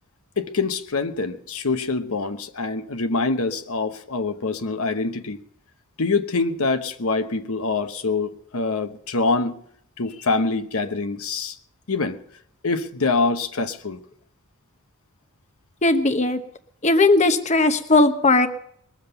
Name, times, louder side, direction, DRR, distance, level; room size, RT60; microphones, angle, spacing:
voice 1, 0.4-5.4 6.0-9.5 10.0-11.6 11.9-12.2 12.6-14.0, left 3 dB, 70° left, 1.0 m, -25 dB
voice 2, 15.8-16.4 16.8-18.5, left 2 dB, 30° left, 1.0 m, -18 dB
21.0 x 7.4 x 6.8 m
head